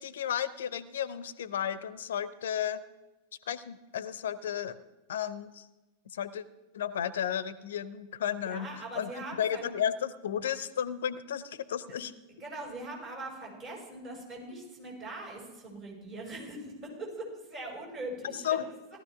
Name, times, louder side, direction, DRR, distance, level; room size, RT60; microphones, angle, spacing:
voice 1, 0.0-2.8 3.5-4.8 5.1-5.7 6.1-6.4 6.7-8.7 9.0-9.1 9.4-12.1 18.2-18.7, left 9 dB, 60° left, 16 dB, 0.7 m, -33 dB
voice 2, 8.4-9.7 11.9-12.0 12.3-18.7, right 2 dB, 35° right, -2 dB, 5.7 m, -41 dB
17.5 x 12.5 x 3.5 m, 1.1 s
figure-of-eight pair, 90°, 0 cm